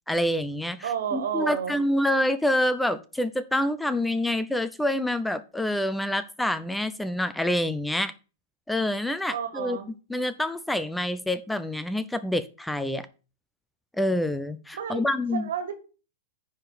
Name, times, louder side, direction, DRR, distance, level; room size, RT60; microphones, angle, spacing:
voice 1, 0.1-8.1 8.7-9.8 10.1-13.1 14.0-15.5, left 1 dB, 5° left, 0.6 m, -27 dB
voice 2, 0.8-1.8 9.3-9.9 14.7-15.0 15.3-15.7, right 8 dB, 70° right, 2.0 m, -30 dB
9.8 x 3.8 x 6.7 m
hypercardioid pair, 110°, 0 cm